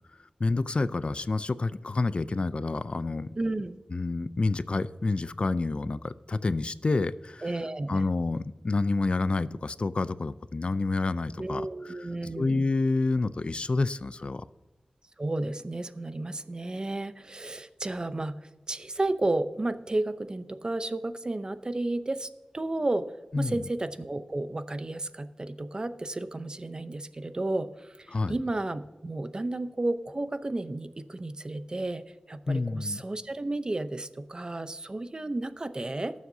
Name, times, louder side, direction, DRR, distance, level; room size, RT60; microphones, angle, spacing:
voice 1, 0.4-3.3 3.9-7.5 7.9-12.1 12.4-14.4 23.3-23.5 28.1-28.4 32.5-33.0, left 3 dB, 50° left, 15 dB, 0.4 m, -28 dB
voice 2, 3.4-3.8 7.4-8.1 11.4-12.7 15.2-36.1, right 2 dB, 35° right, 11 dB, 0.7 m, -32 dB
19.0 x 7.3 x 2.7 m, 1.1 s
wide cardioid pair, 70°, 2 cm